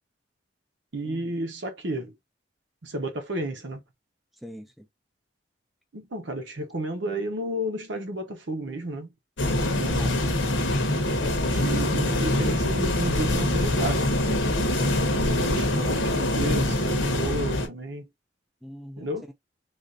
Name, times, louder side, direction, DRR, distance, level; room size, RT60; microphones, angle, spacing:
voice 1, 0.9-2.1 2.8-3.8 5.9-9.1 9.6-10.2 11.4-14.4 15.1-18.1 19.0-19.2, right 1 dB, 75° right, 0.8 m, -32 dB
voice 2, 4.4-4.9 18.6-19.3, equal, ahead, 0.4 m, -44 dB
sound 1, 9.4-17.7, left 1 dB, 80° left, 0.9 m, -24 dB
3.3 x 2.5 x 2.5 m
head